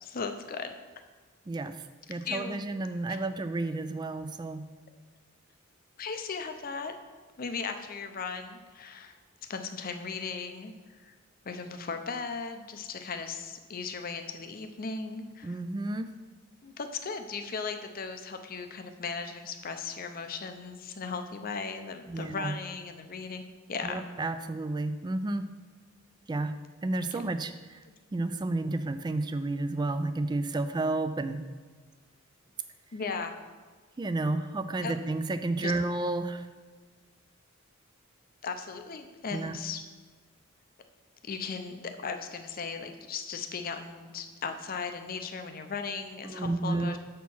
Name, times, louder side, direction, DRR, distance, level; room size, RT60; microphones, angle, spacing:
voice 1, 0.0-0.8 2.2-2.6 3.1-3.3 6.0-6.9 7.4-9.1 9.5-10.7 11.0-11.1 11.4-15.5 16.6-24.0 27.1-27.2 32.9-33.3 34.8-34.9 35.6-35.7 38.4-39.8 41.3-47.0, left 5 dB, 45° left, 7 dB, 0.6 m, -37 dB
voice 2, 1.5-1.8 2.1-4.6 15.4-16.1 22.1-22.5 23.8-25.5 26.3-26.5 26.8-27.8 28.1-31.4 34.0-36.5 39.3-39.6 46.2-47.0, right 2 dB, 20° right, 10 dB, 0.3 m, -31 dB
7.2 x 4.4 x 5.5 m, 1.4 s
head